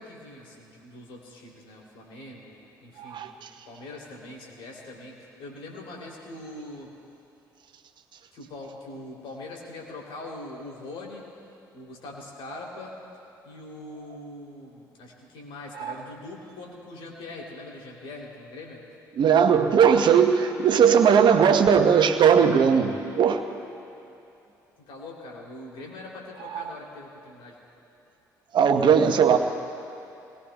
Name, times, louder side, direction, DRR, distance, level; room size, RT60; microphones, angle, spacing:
voice 1, 0.0-3.3 3.6-6.9 8.3-11.3 11.7-13.0 13.4-18.8 24.8-27.6, left 2 dB, 65° left, -1 dB, 3.0 m, -42 dB
voice 2, 3.0-3.5 15.8-15.9 19.1-23.4 26.5-26.6 28.5-29.4, right 7 dB, 50° right, 7 dB, 1.0 m, -19 dB
25.0 x 20.0 x 2.3 m, 2.8 s
hypercardioid pair, 50°, 10 cm